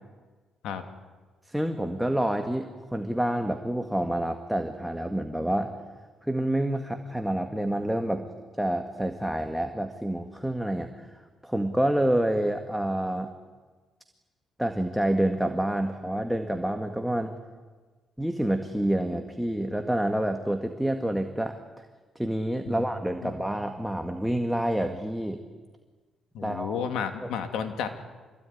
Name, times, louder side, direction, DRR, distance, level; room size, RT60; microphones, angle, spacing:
voice 1, 1.5-5.7 6.2-8.3 8.6-13.3 14.6-17.3 18.2-21.8 22.2-25.4 26.4-26.9 27.2-27.3, right 1 dB, 5° right, 5 dB, 1.8 m, -28 dB
voice 2, 26.3-27.9, left 7 dB, 85° left, 7 dB, 2.6 m, -32 dB
26.0 x 21.5 x 9.9 m, 1.4 s
cardioid pair, 90°, 0 cm